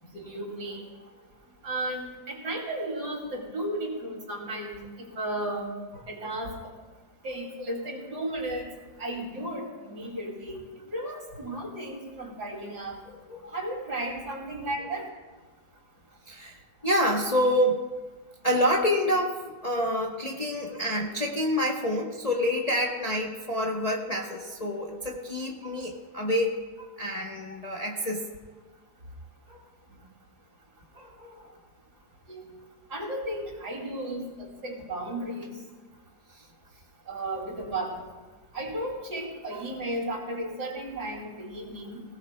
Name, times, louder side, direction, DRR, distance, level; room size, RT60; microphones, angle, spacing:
voice 1, 0.0-0.9 1.6-5.7 6.1-6.5 7.2-8.7 9.0-10.6 10.9-13.0 13.5-15.1 29.9-30.0 32.3-32.4 32.9-35.5 37.1-37.9 38.5-42.0, right 1 dB, 65° right, -1 dB, 3.0 m, -34 dB
voice 2, 13.3-13.7 14.0-14.1 16.3-17.8 18.4-28.3 29.5-29.6 30.9-31.5, equal, 30° left, -1 dB, 0.9 m, -28 dB
19.5 x 17.5 x 2.2 m, 1.3 s
omnidirectional pair, 1.9 m